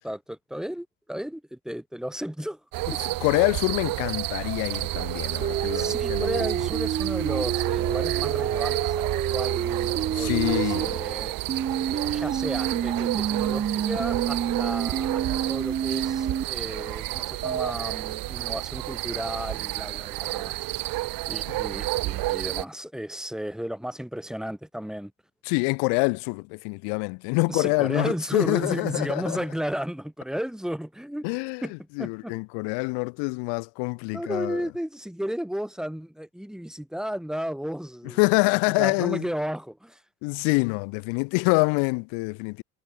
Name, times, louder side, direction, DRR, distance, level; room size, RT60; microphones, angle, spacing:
voice 1, 0.0-2.6 2.9-3.0 4.9-5.0 5.7-11.5 11.9-20.8 21.3-25.1 27.5-31.3 31.6-32.3 34.1-40.0, equal, ahead, 7.2 m, -34 dB
sound 1, 2.7-22.6, right 19 dB, 55° right, 1.1 m, -30 dB
voice 2, 3.0-6.5 10.1-10.9 25.5-29.4 31.2-31.6 32.0-34.6 38.2-39.2 40.2-42.6, left 36 dB, 85° left, 3.7 m, -26 dB
sound 2, 5.4-10.9 11.5-16.4 17.4-17.7, right 8 dB, 25° right, 1.7 m, -28 dB
cardioid pair, 150°, 41 cm